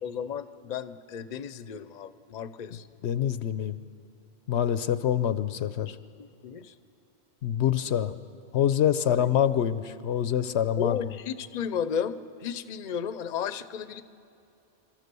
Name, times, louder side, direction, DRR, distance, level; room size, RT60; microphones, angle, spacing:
voice 1, 0.0-2.8 6.2-6.7 9.1-9.3 10.8-14.0, left 7 dB, 50° left, 13 dB, 0.7 m, -34 dB
voice 2, 3.0-3.8 4.5-6.0 7.4-8.1 8.5-11.0, left 10 dB, 90° left, 13 dB, 1.0 m, -25 dB
27.5 x 13.5 x 6.9 m, 2.6 s
omnidirectional pair, 1.1 m